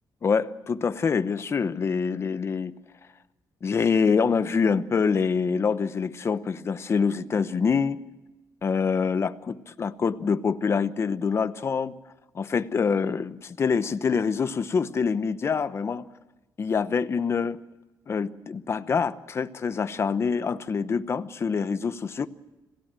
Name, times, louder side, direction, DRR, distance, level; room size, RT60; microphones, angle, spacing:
voice 1, 0.2-2.7 3.6-8.0 8.6-11.9 12.3-16.1 16.6-17.6 18.1-22.3, left 5 dB, 35° left, 12 dB, 0.9 m, -25 dB
27.0 x 17.0 x 7.6 m, 1.1 s
cardioid pair, 125°, 8 cm